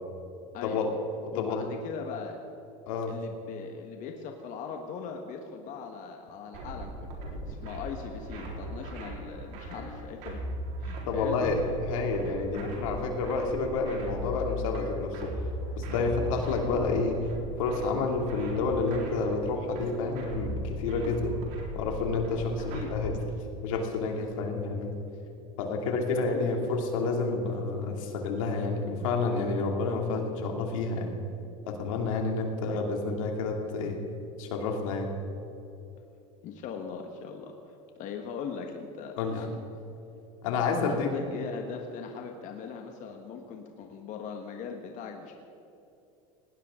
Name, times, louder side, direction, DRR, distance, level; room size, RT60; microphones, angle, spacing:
voice 1, 0.5-0.9 1.3-2.4 3.1-7.2 7.5-10.5 10.8-11.5 22.7-22.9 26.3-26.8 32.7-32.8 36.4-39.6 40.8-45.3, left 6 dB, 50° left, 3 dB, 1.5 m, -40 dB
voice 2, 1.3-1.7 2.9-3.1 11.1-15.3 15.8-17.3 17.6-21.3 21.7-23.1 23.6-25.0 25.6-31.2 31.7-34.0 34.4-35.1 39.2-39.4 40.4-41.1, left 3 dB, 85° left, 2 dB, 2.8 m, -29 dB
sound 1, 6.5-23.1, equal, 65° right, 4.2 m, -38 dB
18.5 x 18.5 x 3.8 m, 2.9 s
supercardioid pair, 125°, 17 cm